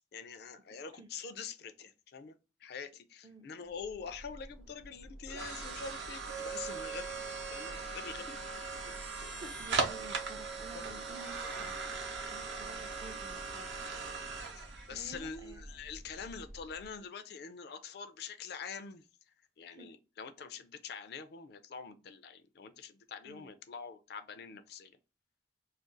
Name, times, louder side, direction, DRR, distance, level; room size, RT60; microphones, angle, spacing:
voice 1, 0.0-7.2 7.5-8.4 9.2-9.4 10.7-10.8 14.6-19.1 19.6-25.0, left 6 dB, 60° left, 0.4 m, -45 dB
voice 2, 3.2-3.7 9.0-11.8 12.3-13.9 14.9-15.6 19.7-19.9 23.3-23.5, right 2 dB, 20° right, 0.4 m, -52 dB
sound 1, 3.8-16.9, right 4 dB, 70° right, 0.7 m, -40 dB
2.5 x 2.3 x 3.7 m
head